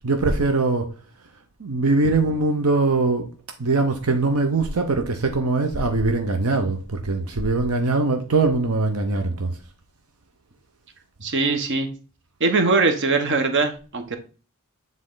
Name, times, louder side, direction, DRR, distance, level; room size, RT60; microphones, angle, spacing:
voice 1, 0.0-0.9 1.6-3.3 3.6-9.5, right 3 dB, 80° right, 0.8 m, -22 dB
voice 2, 11.2-11.9 12.4-14.2, right 3 dB, 55° right, 1.0 m, -21 dB
7.6 x 3.7 x 3.8 m
head